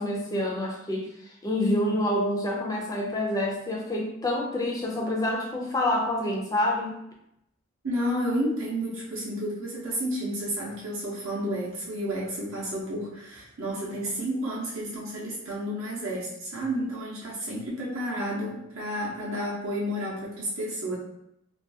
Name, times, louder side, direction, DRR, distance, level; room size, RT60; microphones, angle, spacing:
voice 1, 0.0-7.0, left 1 dB, 15° left, -1 dB, 0.3 m, -27 dB
voice 2, 7.8-21.0, equal, 70° right, -5 dB, 0.5 m, -31 dB
2.3 x 2.2 x 2.6 m, 0.80 s
head